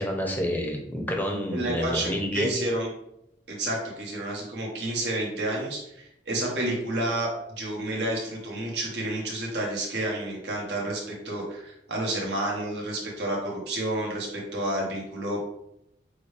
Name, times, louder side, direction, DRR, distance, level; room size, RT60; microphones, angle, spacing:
voice 1, 0.0-2.5, equal, 10° left, 1 dB, 0.7 m, -29 dB
voice 2, 1.5-2.9 3.5-7.3 7.6-15.4, right 1 dB, 75° right, -2 dB, 1.3 m, -30 dB
6.3 x 2.3 x 3.3 m, 0.78 s
head